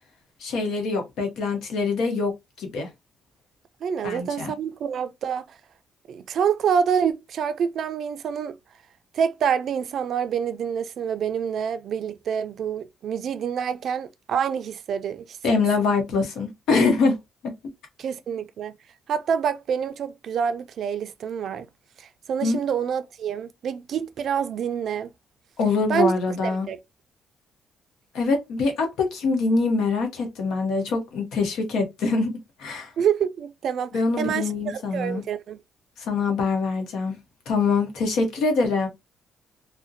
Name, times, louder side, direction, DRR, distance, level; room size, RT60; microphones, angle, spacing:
voice 1, 0.4-2.3 2.6-2.9 4.0-4.5 15.4-17.2 17.4-17.5 22.4-22.6 25.6-26.7 28.1-32.3 32.6-32.9 33.9-35.2 36.0-37.2 37.5-38.9, left 4 dB, 80° left, 0.8 m, -24 dB
voice 2, 3.8-5.6 6.1-8.6 9.1-15.6 18.0-18.8 19.1-21.7 22.0-25.1 25.9-26.2 26.4-26.8 33.0-35.6, right 7 dB, 65° right, 0.3 m, -27 dB
2.4 x 2.1 x 2.5 m
cardioid pair, 90°, 0 cm